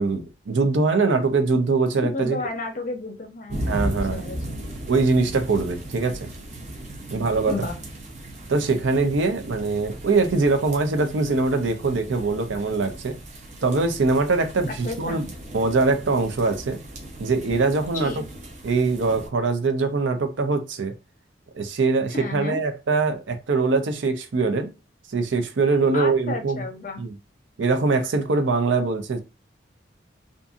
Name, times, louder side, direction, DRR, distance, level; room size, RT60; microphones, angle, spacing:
voice 1, 0.0-2.4 3.7-4.2 4.9-6.3 7.1-7.6 8.5-13.2 13.6-15.2 15.5-16.8 17.2-18.1 18.6-20.9 21.5-24.7 25.1-26.6 27.0-27.1 27.6-29.2, right 3 dB, 85° right, 0.5 m, -22 dB
voice 2, 2.0-4.4 7.5-7.8 14.7-15.2 17.9-18.2 22.1-22.6 25.7-27.0, left 3 dB, 45° left, 0.6 m, -32 dB
sound 1, 3.5-19.3, right 1 dB, 40° right, 0.6 m, -36 dB
2.5 x 2.5 x 2.4 m
head